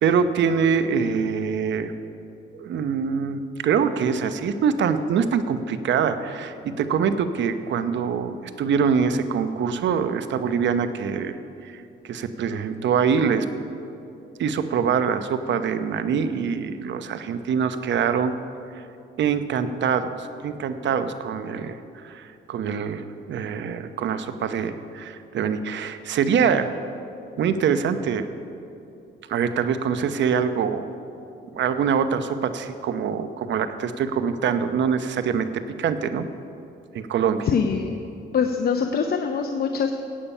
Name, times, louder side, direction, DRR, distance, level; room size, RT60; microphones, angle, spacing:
voice 1, 0.0-1.9 2.5-13.5 14.4-18.3 18.7-18.8 19.2-21.8 22.0-26.7 27.4-28.3 29.3-30.9 31.5-36.3 36.9-37.5, right 6 dB, 65° right, 10 dB, 0.8 m, -24 dB
voice 2, 37.5-38.0 38.3-39.9, left 6 dB, 50° left, 5 dB, 0.8 m, -23 dB
16.0 x 8.6 x 5.6 m, 2.7 s
cardioid pair, 90°, 20 cm